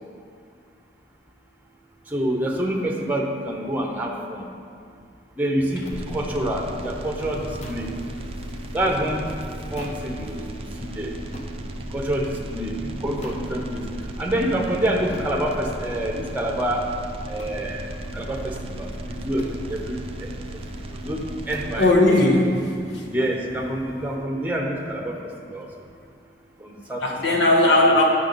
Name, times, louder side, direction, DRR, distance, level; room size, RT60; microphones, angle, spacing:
voice 1, 2.1-4.5 5.4-7.9 8.7-9.2 9.7-11.1 11.9-13.8 14.2-16.8 17.3-17.9 18.1-20.3 20.9-21.9 23.1-25.7 26.6-27.1 27.3-27.4, right 1 dB, 10° right, 0 dB, 0.8 m, -27 dB
sound 1, 5.6-24.2, equal, 60° left, 1.5 m, -42 dB
sound 2, 5.9-6.0 7.6-7.9 9.8-10.1 11.3-11.6 13.2-13.5 15.1-15.4 17.4-17.6 19.4-19.6 21.5-21.8, left 1 dB, 35° left, 0.7 m, -40 dB
sound 3, 5.9-21.9, right 1 dB, 30° right, 0.4 m, -36 dB
voice 2, 21.8-23.0 27.0-28.0, left 2 dB, 85° left, -1 dB, 1.3 m, -18 dB
10.0 x 5.9 x 3.9 m, 2.3 s
head